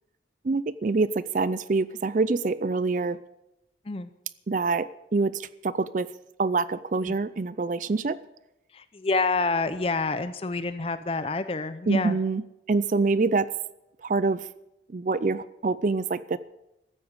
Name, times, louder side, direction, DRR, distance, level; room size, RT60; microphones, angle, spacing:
voice 1, 0.4-3.2 4.5-6.1 6.4-8.2 11.9-12.4 12.7-13.5 14.0-14.5 14.9-16.4, right 3 dB, 45° right, 16 dB, 0.4 m, -25 dB
voice 2, 8.7-12.2, left 3 dB, 30° left, 12 dB, 0.6 m, -28 dB
14.5 x 8.7 x 8.6 m, 0.90 s
head